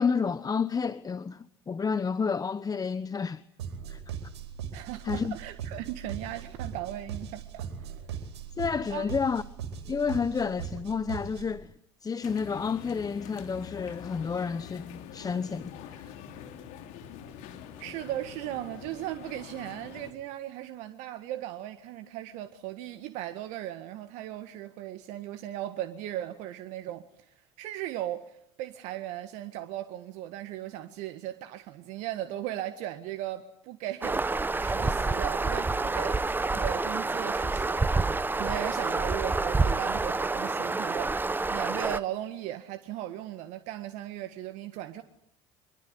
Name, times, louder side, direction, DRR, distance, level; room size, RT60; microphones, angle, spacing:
voice 1, 0.0-3.4 3.9-4.0 5.0-5.4 8.6-9.4 9.9-11.7 12.0-16.1, left 5 dB, 25° left, 1.1 m, -30 dB
sound 1, 3.6-11.6, right 7 dB, 80° right, 4.5 m, -39 dB
voice 2, 4.7-7.9 8.9-9.1 17.8-34.2 34.6-36.2 36.5-38.1 38.3-45.0, right 13 dB, 65° right, 1.8 m, -37 dB
sound 2, 12.2-20.1, left 9 dB, 65° left, 3.6 m, -45 dB
sound 3, 34.0-42.0, right 3 dB, 15° right, 1.1 m, -28 dB
26.0 x 23.0 x 9.9 m
hypercardioid pair, 65°, 14 cm